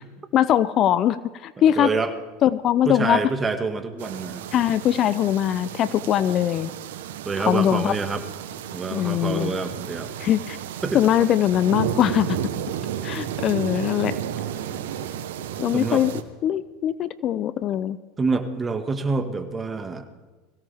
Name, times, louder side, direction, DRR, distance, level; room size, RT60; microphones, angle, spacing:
voice 1, 0.3-1.9 2.4-3.2 4.5-6.7 7.5-8.0 8.9-9.5 10.2-10.6 10.9-12.4 13.0-14.2 15.6-16.1 16.4-18.0, left 11 dB, 45° left, 16 dB, 0.6 m, -21 dB
voice 2, 1.8-2.1 2.9-4.5 7.3-8.2 8.7-10.1 10.8-11.0 15.7-16.0 18.2-20.0, right 4 dB, 20° right, 7 dB, 1.9 m, -26 dB
sound 1, 4.0-16.2, right 10 dB, 75° right, 1.1 m, -32 dB
22.0 x 16.5 x 3.6 m, 1.3 s
hypercardioid pair, 90°, 0 cm